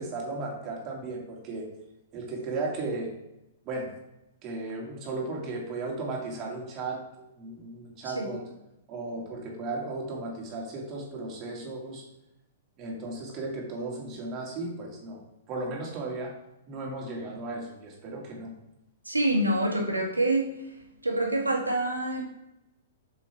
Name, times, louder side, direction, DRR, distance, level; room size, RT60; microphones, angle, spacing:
voice 1, 0.0-1.7 2.1-3.1 3.6-3.9 4.4-7.0 7.4-8.4 8.9-12.0 12.8-15.2 15.5-16.3 16.7-18.5, right 3 dB, 30° right, -1 dB, 2.3 m, -35 dB
voice 2, 19.1-20.7 21.0-22.2, right 1 dB, 80° right, -1 dB, 2.0 m, -26 dB
7.1 x 6.9 x 3.5 m, 0.90 s
figure-of-eight pair, 110°, 0 cm